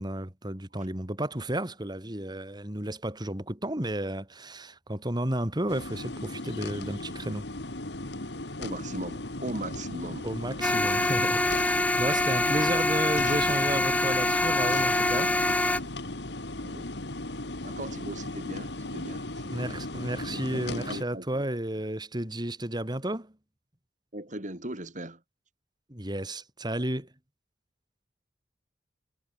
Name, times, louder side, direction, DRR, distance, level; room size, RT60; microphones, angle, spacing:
voice 1, 0.0-7.4 10.2-15.3 19.5-23.3 25.9-27.1, right 1 dB, 25° right, 3.0 m, -32 dB
sound 1, 5.7-21.0, left 2 dB, 70° left, 2.5 m, -37 dB
voice 2, 8.6-10.3 16.6-16.9 17.6-19.8 20.5-21.4 24.1-25.2, right 1 dB, 45° right, 5.7 m, -39 dB
sound 2, 10.6-15.8, left 2 dB, 10° left, 0.6 m, -25 dB
head